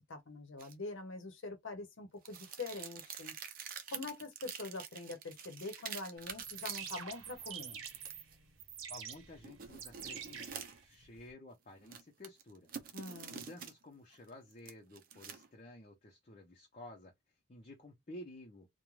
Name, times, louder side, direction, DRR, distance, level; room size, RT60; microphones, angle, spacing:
voice 1, 0.1-3.3 3.9-7.8 12.9-13.4, left 3 dB, 75° left, 0.8 m, -44 dB
sound 1, 0.6-0.7 2.2-7.0 7.8-8.3 9.4-10.9 11.8-13.7 14.1-15.5, right 7 dB, 45° right, 0.5 m, -47 dB
sound 2, 6.3-11.3, right 7 dB, 85° right, 0.8 m, -47 dB
voice 2, 8.9-12.7 13.0-17.1 17.5-18.7, left 1 dB, 40° left, 0.6 m, -53 dB
2.4 x 2.1 x 3.1 m
head